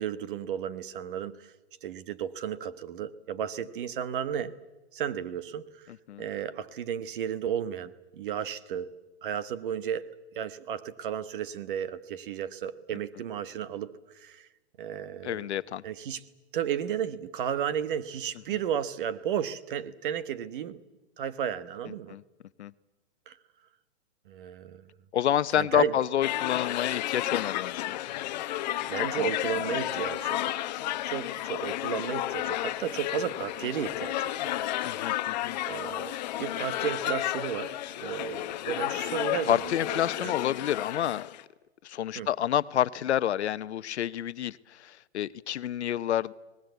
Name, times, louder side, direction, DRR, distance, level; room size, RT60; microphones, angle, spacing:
voice 1, 0.0-1.5 1.8-4.5 4.9-5.9 6.2-8.9 9.2-10.1 10.3-14.5 14.8-15.5 15.8-16.2 16.5-20.8 21.2-22.2 23.3-23.4 24.3-24.8 25.6-26.0 28.9-30.5 31.0-35.2 35.7-40.3 42.1-42.3, right 9 dB, 50° right, 1.3 m, -33 dB
voice 2, 5.9-6.3 15.2-15.8 22.1-22.2 22.6-22.7 25.1-28.1 29.2-29.3 34.8-35.6 39.5-41.3 41.8-46.3, left 11 dB, 80° left, 0.9 m, -29 dB
sound 1, 26.2-41.4, left 14 dB, 40° left, 0.9 m, -32 dB
24.5 x 19.5 x 8.1 m
hypercardioid pair, 155°, 33 cm